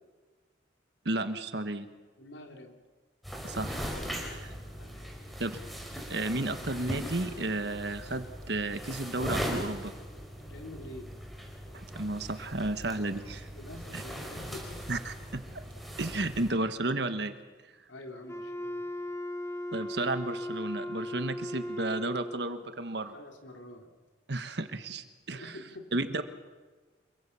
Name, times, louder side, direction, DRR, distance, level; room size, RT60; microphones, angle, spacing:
voice 1, 1.0-1.9 3.4-3.9 4.3-4.5 5.4-5.5 6.1-9.9 11.7-13.5 13.9-14.0 14.9-15.4 16.0-17.3 19.7-23.1 24.3-25.5 25.9-26.2, right 2 dB, 60° right, 9 dB, 1.4 m, -33 dB
voice 2, 2.2-2.8 4.5-5.1 10.4-11.2 13.6-14.9 17.9-18.9 23.1-23.9 25.3-25.9, left 1 dB, 80° left, 3 dB, 3.8 m, -47 dB
sound 1, 3.2-16.5, equal, ahead, 5.0 m, -39 dB
Wind instrument woodwind instrument, 18.3-22.6, left 1 dB, 15° left, 2.6 m, -37 dB
27.0 x 23.5 x 7.0 m, 1.3 s
head